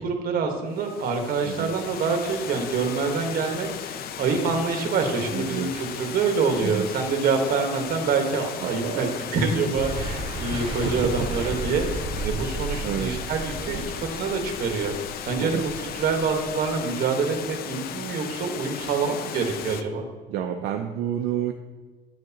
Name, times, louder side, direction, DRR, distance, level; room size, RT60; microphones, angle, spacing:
voice 1, 0.0-9.1 9.3-13.8 14.2-14.9 15.2-20.0, right 4 dB, 60° right, 3 dB, 1.3 m, -26 dB
Water, 0.7-19.8, left 9 dB, 65° left, 0.5 m, -36 dB
voice 2, 5.3-5.9 6.6-6.9 8.6-9.2 10.8-11.1 12.8-13.1 15.4-15.7 20.3-21.5, right 9 dB, 80° right, 5 dB, 0.5 m, -29 dB
sound 1, 9.8-16.7, right 3 dB, 35° right, 2.0 m, -34 dB
10.0 x 6.4 x 2.9 m, 1.3 s
cardioid pair, 110°, 17 cm